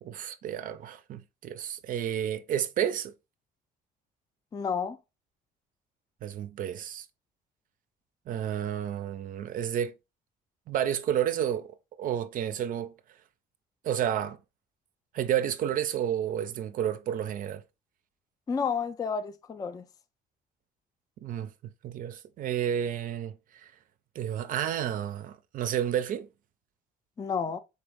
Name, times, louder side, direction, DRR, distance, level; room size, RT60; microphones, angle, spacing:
voice 1, 0.0-3.1 6.2-7.1 8.3-9.9 10.7-12.9 13.8-14.4 15.1-17.6 21.2-21.5 21.8-23.3 23.6-23.7 24.2-26.3, right 10 dB, 55° right, 0.4 m, -31 dB
voice 2, 4.5-5.0 18.5-19.8 27.2-27.6, left 6 dB, 20° left, 0.3 m, -30 dB
4.1 x 3.0 x 3.3 m
cardioid pair, 110°, 17 cm